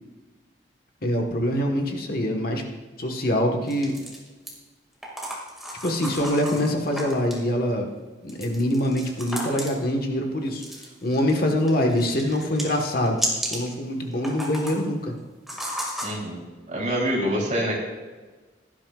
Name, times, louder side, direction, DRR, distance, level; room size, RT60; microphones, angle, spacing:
voice 1, 1.0-2.6 3.0-3.9 5.8-7.9 8.2-10.6 11.0-13.2 13.5-15.1, left 1 dB, 55° left, 2 dB, 1.4 m, -24 dB
sound 1, 3.7-4.5 5.0-7.4 8.3-9.9 10.6-11.3 11.6-13.7 14.1-14.8 15.5-16.1, equal, ahead, 2.2 m, -33 dB
voice 2, 16.0-16.4 16.7-17.7, equal, 40° right, -3 dB, 3.4 m, -25 dB
17.0 x 11.5 x 2.4 m, 1.3 s
head